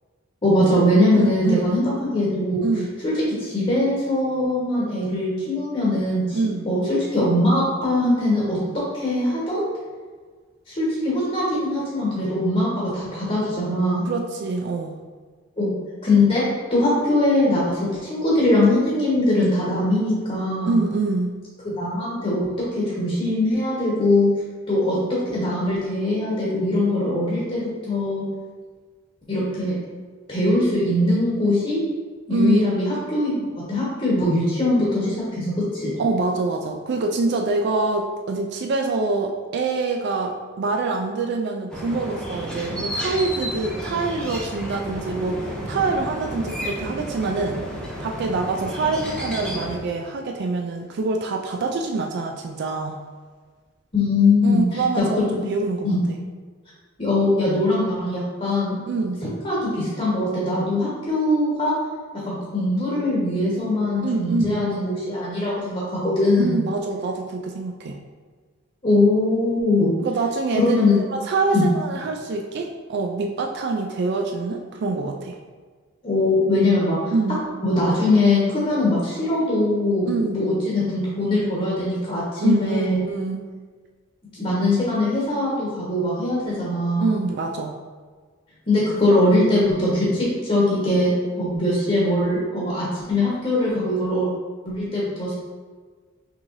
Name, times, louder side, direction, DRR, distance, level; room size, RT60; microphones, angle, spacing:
voice 1, 0.4-2.7 3.0-3.1 3.4-6.4 6.6-8.6 8.9-9.7 10.7-14.1 15.6-15.7 16.0-16.4 16.7-17.8 18.1-20.8 21.6-22.5 22.7-24.3 24.7-28.2 29.3-29.7 30.3-31.8 32.3-35.9 42.6-42.7 53.9-55.3 55.8-56.0 57.0-58.8 59.2-61.7 62.3-66.6 68.8-69.9 70.5-71.0 71.5-71.6 76.0-77.1 77.6-83.0 84.3-87.1 88.7-94.3 94.6-95.3, left 2 dB, 35° left, -7 dB, 1.3 m, -21 dB
voice 2, 1.1-1.8 2.6-2.9 6.3-6.7 14.1-15.0 20.6-21.3 32.3-32.7 36.0-47.6 48.0-53.0 54.4-56.2 58.9-59.2 64.0-64.6 66.4-68.0 70.0-70.8 71.1-75.4 77.1-77.4 80.0-80.4 82.4-83.5 87.0-87.8, right 3 dB, 55° right, 2 dB, 0.4 m, -25 dB
sound 1, 41.7-49.8, equal, 5° left, 0.9 m, -32 dB
5.9 x 3.2 x 2.6 m, 1.5 s
head